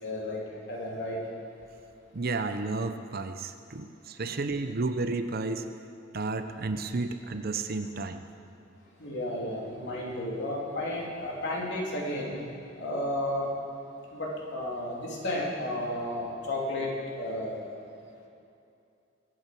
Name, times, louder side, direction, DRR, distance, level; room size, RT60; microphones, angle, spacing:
voice 1, 0.0-0.4 0.7-1.2 9.0-12.4 12.8-13.5 14.1-16.9 17.1-17.6, left 1 dB, 60° left, -3 dB, 3.4 m, -32 dB
voice 2, 2.1-5.7 6.1-8.2, right 3 dB, 50° right, 9 dB, 0.7 m, -32 dB
21.5 x 8.8 x 6.0 m, 2.6 s
head